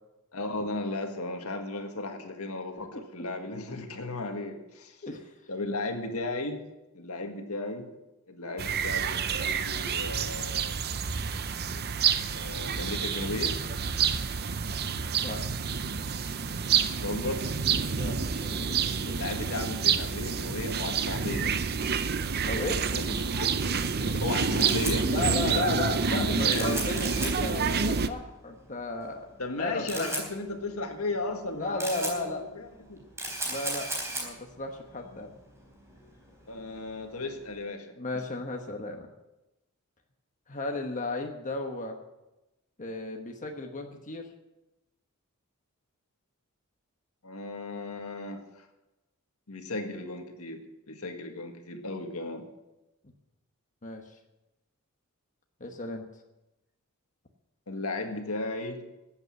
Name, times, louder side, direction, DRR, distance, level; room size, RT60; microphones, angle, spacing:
voice 1, 0.3-5.0 5.5-6.6 6.9-7.9 8.3-10.8 12.3-13.6 17.0-17.5 19.1-21.6 22.9-26.8 29.4-33.0 36.5-37.9 47.2-48.7 49.5-52.5 57.7-58.9, left 2 dB, 80° left, 5 dB, 1.8 m, -35 dB
voice 2, 5.0-5.3 15.2-15.4 17.8-19.2 22.5-22.9 25.0-29.3 29.6-30.3 31.5-32.4 33.4-35.3 38.0-39.1 40.5-42.0 42.8-44.3 53.8-54.1 55.6-56.1, left 3 dB, 35° left, 3 dB, 1.2 m, -35 dB
sound 1, 8.6-28.1, right 6 dB, 45° right, 0.7 m, -28 dB
Camera, 24.6-37.6, right 1 dB, 15° right, 4.1 m, -38 dB
14.5 x 8.3 x 7.7 m, 0.98 s
head